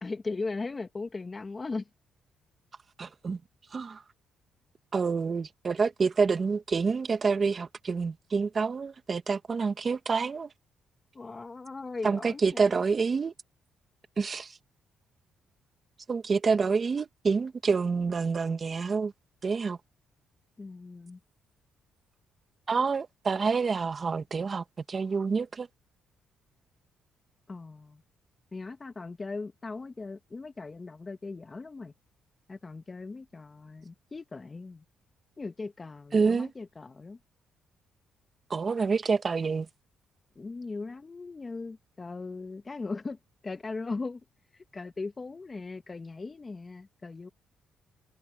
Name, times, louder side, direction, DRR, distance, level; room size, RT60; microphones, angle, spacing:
voice 1, 0.0-1.9 11.1-12.7 20.6-21.2 27.5-28.0 28.5-31.9 32.5-34.8 35.4-37.2 40.3-43.2 43.4-44.2 44.5-47.3, left 3 dB, 30° left, 1.4 m, -38 dB
voice 2, 3.0-3.4 3.7-4.0 4.9-10.5 12.0-13.3 14.2-14.5 16.1-19.1 19.4-19.8 22.7-25.7 36.1-36.5 38.5-39.7, right 5 dB, 40° right, 1.8 m, -27 dB
cardioid pair, 90°, 0 cm